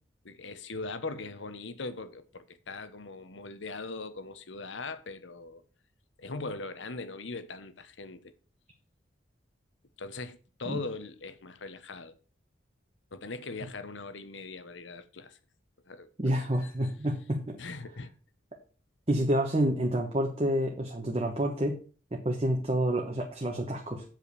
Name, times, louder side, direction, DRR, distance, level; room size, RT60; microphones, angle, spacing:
voice 1, 0.2-5.6 6.2-8.3 10.0-12.1 13.1-15.4 15.9-16.9 17.6-18.1, left 3 dB, 85° left, 1.0 m, -40 dB
voice 2, 16.2-17.6 19.1-21.8 22.1-24.0, right 1 dB, 30° right, 1.1 m, -28 dB
7.7 x 5.2 x 6.7 m
head